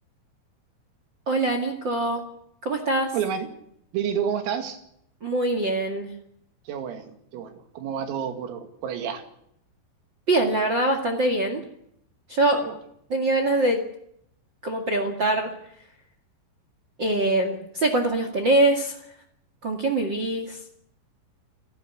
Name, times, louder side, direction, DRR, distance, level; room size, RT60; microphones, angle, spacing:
voice 1, 1.2-2.2 2.6-3.1 5.2-6.1 10.3-11.7 12.3-12.7 13.1-13.9 14.6-15.5 17.0-19.0 19.6-20.6, right 2 dB, 55° right, 5 dB, 1.2 m, -23 dB
voice 2, 3.1-3.5 3.9-4.8 6.7-9.2 12.6-12.8, right 8 dB, 90° right, 7 dB, 5.0 m, -30 dB
28.5 x 12.5 x 10.0 m, 0.74 s
omnidirectional pair, 5.9 m